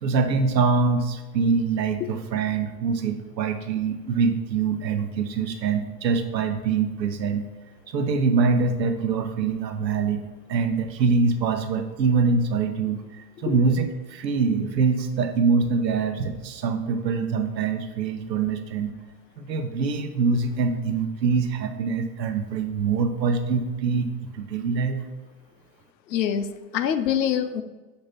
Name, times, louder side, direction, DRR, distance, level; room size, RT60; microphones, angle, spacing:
voice 1, 0.0-7.5 7.9-10.2 10.5-18.9 19.4-25.0, right 4 dB, 85° right, 7 dB, 0.9 m, -24 dB
voice 2, 26.1-27.6, left 9 dB, 80° left, 11 dB, 0.7 m, -25 dB
6.7 x 2.9 x 5.7 m, 1.2 s
hypercardioid pair, 110°, 50 cm